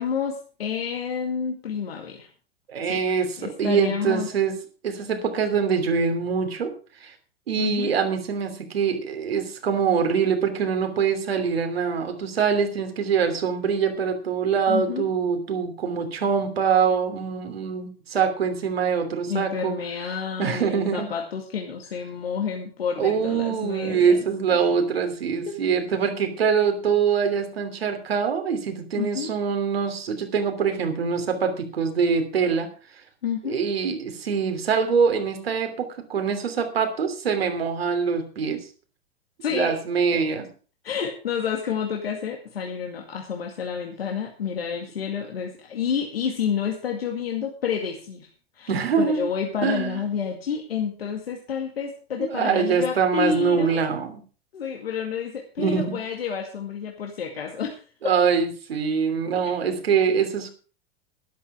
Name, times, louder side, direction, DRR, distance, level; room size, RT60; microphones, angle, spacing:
voice 1, 0.0-2.3 2.8-4.3 7.6-8.0 14.7-15.1 19.3-24.3 25.4-25.8 29.0-29.3 33.2-33.6 39.4-39.8 40.1-40.3 40.8-48.3 48.5-48.7 49.0-53.8 54.5-57.8, left 7 dB, 70° left, 2 dB, 2.2 m, -29 dB
voice 2, 2.7-4.5 4.8-6.7 7.0-7.1 7.5-19.7 20.4-21.1 23.0-33.0 33.4-38.7 39.5-40.5 48.7-49.2 49.6-50.0 52.2-54.2 55.6-56.0 58.0-60.5, right 6 dB, 75° right, 7 dB, 3.1 m, -24 dB
12.5 x 11.5 x 4.9 m, 0.38 s
figure-of-eight pair, 90°, 31 cm